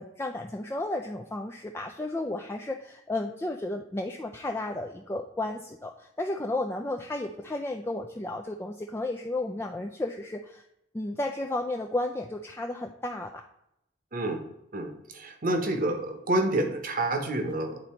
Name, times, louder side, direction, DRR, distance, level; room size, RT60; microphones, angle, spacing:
voice 1, 0.0-10.6 10.9-13.4, left 2 dB, 15° left, 2 dB, 0.3 m, -33 dB
voice 2, 14.1-14.4 14.7-17.8, right 1 dB, 45° right, 6 dB, 1.0 m, -28 dB
9.0 x 4.1 x 4.4 m, 0.81 s
head